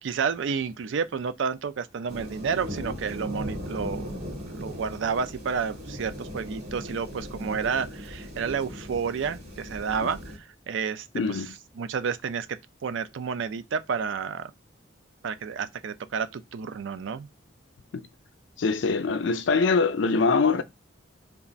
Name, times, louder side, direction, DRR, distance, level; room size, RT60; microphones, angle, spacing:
voice 1, 0.0-4.1 4.4-11.4 11.8-14.5 15.2-17.3, right 6 dB, 75° right, 0.4 m, -30 dB
sound 1, 2.1-10.4, equal, 55° right, 1.9 m, -38 dB
voice 2, 11.1-11.5 17.9-18.1 18.6-20.6, left 4 dB, 70° left, 0.4 m, -23 dB
3.4 x 2.4 x 4.0 m
head